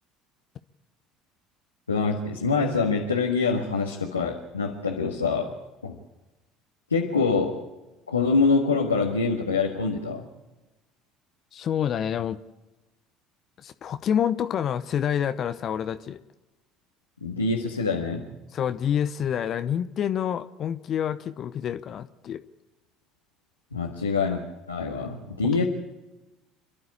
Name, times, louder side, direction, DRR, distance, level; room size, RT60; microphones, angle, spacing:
voice 1, 1.9-5.5 5.8-6.0 6.9-7.6 8.1-10.3 17.2-18.3 23.7-25.6, left 4 dB, 90° left, 0 dB, 1.7 m, -25 dB
voice 2, 11.5-12.4 13.6-16.2 18.5-22.4, left 9 dB, 45° left, 11 dB, 0.9 m, -27 dB
29.0 x 11.5 x 8.5 m, 1.1 s
figure-of-eight pair, 60°, 0 cm